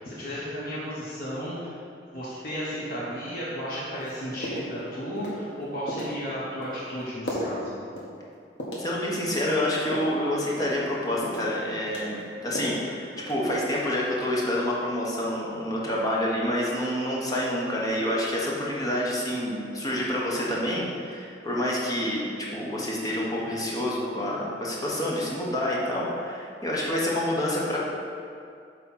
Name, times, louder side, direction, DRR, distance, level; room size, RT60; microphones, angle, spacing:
voice 1, 0.0-1.7 2.1-7.7, equal, 55° left, -8 dB, 1.2 m, -34 dB
sound 1, 4.0-4.1 4.4-4.8 5.2-5.4 5.9-6.1 6.6-6.8 7.3-7.5 8.0-8.1 8.6-8.9 9.3-10.2 10.6-10.8 11.2-11.6 11.9-12.8 13.2-13.6, equal, 75° left, 1.5 m, -34 dB
voice 2, 8.8-27.8, left 1 dB, 20° left, -5 dB, 1.2 m, -28 dB
8.5 x 3.3 x 5.7 m, 2.3 s
head